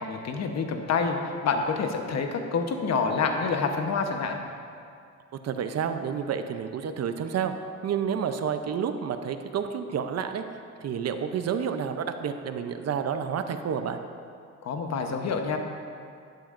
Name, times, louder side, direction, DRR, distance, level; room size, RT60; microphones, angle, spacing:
voice 1, 0.0-4.4 14.6-15.6, left 5 dB, 60° left, 4 dB, 1.1 m, -27 dB
voice 2, 5.4-7.5 7.8-10.4 10.8-14.0, right 7 dB, 55° right, 8 dB, 0.7 m, -29 dB
11.5 x 10.5 x 2.6 m, 2.4 s
cardioid pair, 90°, 30 cm